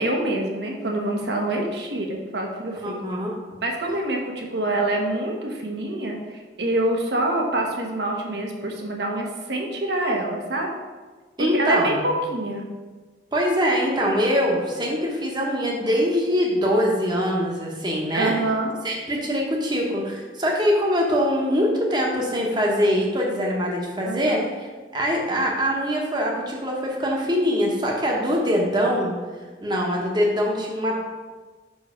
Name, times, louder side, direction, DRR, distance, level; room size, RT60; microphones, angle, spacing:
voice 1, 0.0-3.2 3.6-10.7 11.4-12.7 18.1-18.7 24.0-24.5, right 1 dB, 65° right, 1 dB, 1.2 m, -26 dB
voice 2, 2.8-3.3 11.4-12.0 13.3-18.3 18.8-29.1 29.6-31.0, equal, 25° right, -1 dB, 1.2 m, -23 dB
5.7 x 5.4 x 5.0 m, 1.3 s
head